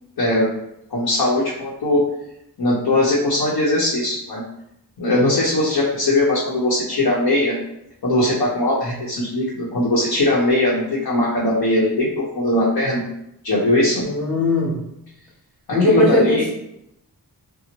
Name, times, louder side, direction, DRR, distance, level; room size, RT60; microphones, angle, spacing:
voice 1, 0.9-2.0 2.6-4.4 5.0-7.6 8.0-13.0 13.4-14.0 15.8-16.5, left 1 dB, 70° left, -6 dB, 0.8 m, -20 dB
voice 2, 14.0-14.8 15.7-16.5, left 2 dB, ahead, -6 dB, 1.1 m, -19 dB
4.2 x 2.0 x 2.9 m, 0.81 s
wide cardioid pair, 115°, 38 cm